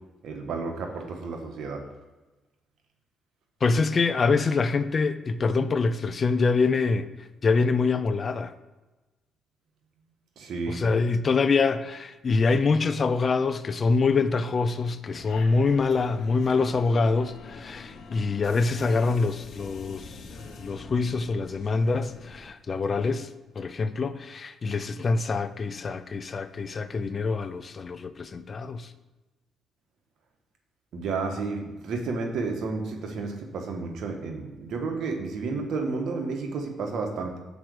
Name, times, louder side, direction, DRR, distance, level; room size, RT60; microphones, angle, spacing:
voice 1, 0.2-1.8 10.4-10.8 30.9-37.4, right 4 dB, 70° right, 1.3 m, -31 dB
voice 2, 3.6-7.1 7.4-8.5 10.7-20.2 20.6-23.3 23.6-28.9, left 4 dB, 40° left, 0.4 m, -25 dB
sound 1, 15.1-22.5, left 4 dB, 65° left, 1.0 m, -45 dB
6.1 x 4.7 x 6.3 m
cardioid pair, 90°, 0 cm